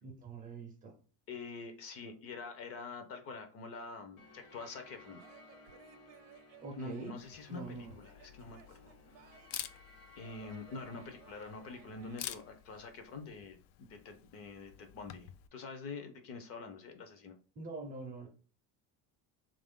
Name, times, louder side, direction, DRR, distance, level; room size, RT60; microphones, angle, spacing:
voice 1, 0.0-1.0 6.6-7.1 7.5-8.0 17.6-18.3, right 3 dB, 25° right, 0.5 m, -44 dB
voice 2, 1.3-5.2 6.7-9.4 10.2-17.4, left 4 dB, 40° left, 0.6 m, -46 dB
sound 1, 4.2-13.0, left 2 dB, 70° left, 1.1 m, -60 dB
Male speech man speaking / Yell / Laughter, 5.2-7.3 8.0-9.7 10.4-12.2, right 9 dB, 65° right, 0.7 m, -61 dB
Camera, 7.2-15.5, left 12 dB, 90° left, 0.5 m, -50 dB
3.8 x 2.5 x 3.5 m
cardioid pair, 180°, 35 cm